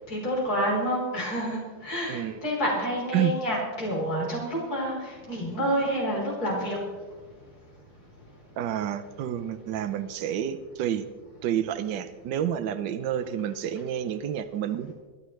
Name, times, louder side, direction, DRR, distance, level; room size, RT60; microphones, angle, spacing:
voice 1, 0.1-6.8, equal, 55° left, -4 dB, 4.5 m, -28 dB
voice 2, 2.1-2.4 3.1-3.3 8.6-11.1 11.4-14.9, right 10 dB, 75° right, 9 dB, 1.3 m, -29 dB
26.0 x 11.5 x 3.2 m, 1.4 s
omnidirectional pair, 2.0 m